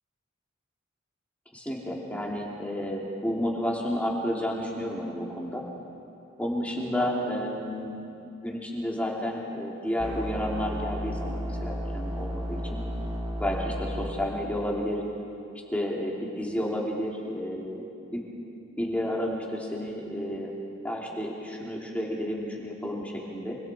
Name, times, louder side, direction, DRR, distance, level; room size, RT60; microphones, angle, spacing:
voice 1, 1.5-5.6 6.4-8.0 8.4-12.8 13.4-15.0 15.7-17.8 18.1-18.2 18.8-20.5 20.8-23.6, equal, 5° left, -3 dB, 3.1 m, -31 dB
sound 1, 10.0-14.1, equal, 30° right, 2.8 m, -33 dB
26.0 x 24.5 x 4.6 m, 2.7 s
head